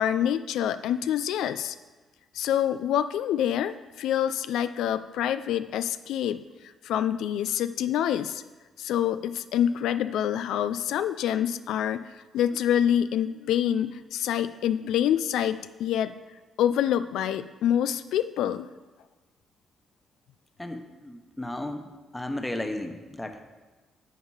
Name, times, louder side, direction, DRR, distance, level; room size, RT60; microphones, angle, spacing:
voice 1, 0.0-1.8 2.3-8.4 8.8-16.1 16.6-18.7, left 10 dB, 85° left, 12 dB, 0.3 m, -26 dB
voice 2, 20.6-23.4, left 1 dB, 10° left, 6 dB, 1.1 m, -34 dB
11.0 x 7.3 x 4.8 m, 1.3 s
cardioid pair, 90°, 0 cm